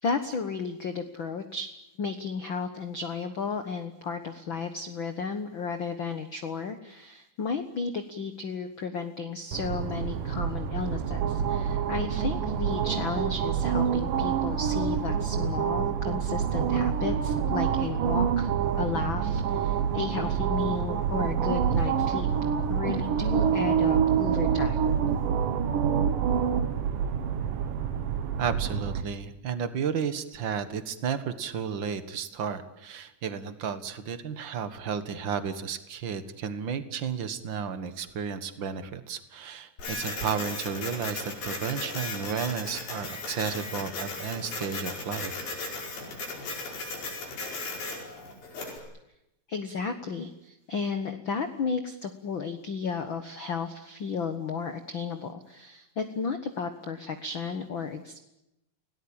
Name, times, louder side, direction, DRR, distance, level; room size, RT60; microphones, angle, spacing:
voice 1, 0.0-1.7 2.0-22.3 22.7-24.8 49.5-58.2, left 5 dB, 60° left, 8 dB, 1.3 m, -33 dB
sound 1, 9.5-29.0, right 8 dB, 70° right, 3.1 m, -27 dB
voice 2, 28.4-45.3, right 7 dB, 50° right, 11 dB, 1.5 m, -33 dB
Printer, 39.8-48.8, left 3 dB, 80° left, 7.0 m, -36 dB
30.0 x 18.5 x 8.9 m, 0.87 s
omnidirectional pair, 4.2 m